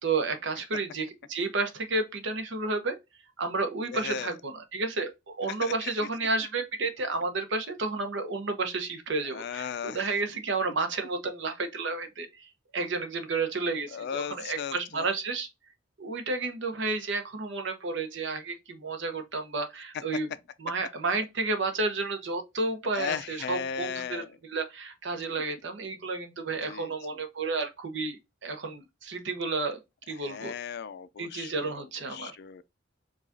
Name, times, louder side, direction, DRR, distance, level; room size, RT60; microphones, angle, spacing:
voice 1, 0.0-3.0 3.4-15.5 16.0-20.3 20.6-28.2 28.4-29.8 30.1-30.5 31.2-32.3, right 3 dB, 65° right, 0.8 m, -31 dB
voice 2, 3.9-4.4 5.6-5.9 9.3-10.1 13.9-15.1 22.9-24.3 26.6-26.9 30.3-32.6, left 7 dB, 60° left, 0.4 m, -36 dB
4.7 x 2.4 x 2.6 m
head